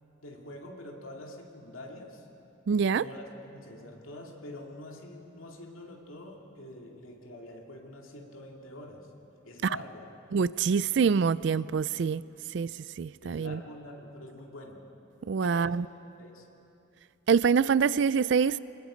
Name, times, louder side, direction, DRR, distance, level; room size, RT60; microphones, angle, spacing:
voice 1, 0.2-2.3 2.9-9.1 9.4-10.1 13.2-14.8 15.4-15.8 16.2-16.5, left 1 dB, 90° left, 0 dB, 2.5 m, -45 dB
voice 2, 2.7-3.0 10.3-12.2 12.5-12.7 13.0-13.6 15.3-15.8 17.3-18.6, right 6 dB, 60° right, 18 dB, 0.3 m, -25 dB
26.0 x 20.5 x 5.2 m, 2.9 s
head